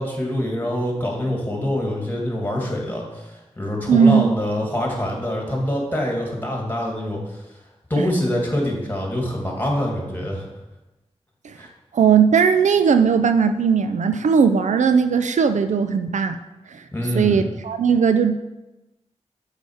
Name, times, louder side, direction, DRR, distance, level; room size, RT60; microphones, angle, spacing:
voice 1, 0.0-7.2 7.9-10.5 11.6-11.7 16.9-17.4, left 1 dB, 15° left, -1 dB, 2.3 m, -25 dB
voice 2, 3.9-4.3 8.0-8.1 11.4-11.5 11.9-16.4 16.7-16.8 17.2-18.4, right 6 dB, 85° right, 9 dB, 0.4 m, -18 dB
7.0 x 4.8 x 4.8 m, 1.0 s
cardioid pair, 40°, 12 cm